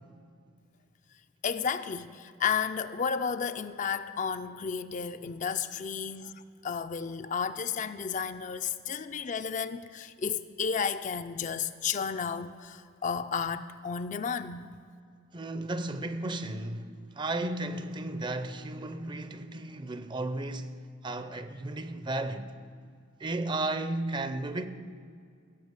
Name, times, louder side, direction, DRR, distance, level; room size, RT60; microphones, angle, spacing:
voice 1, 1.4-14.7, left 6 dB, 40° left, 0.4 m, -32 dB
voice 2, 15.3-20.8 21.0-22.5 23.2-24.7, right 2 dB, 25° right, 0.5 m, -34 dB
16.5 x 7.0 x 8.1 m
head